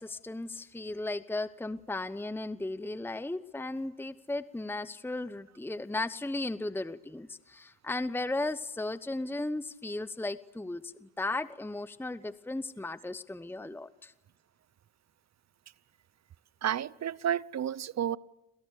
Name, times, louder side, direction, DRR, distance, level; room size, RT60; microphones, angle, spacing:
voice 1, 0.0-14.1, left 2 dB, 5° left, 1.0 m, -36 dB
voice 2, 16.6-18.2, right 10 dB, 45° right, 0.9 m, -31 dB
28.0 x 27.5 x 6.7 m
supercardioid pair, 65°, 36 cm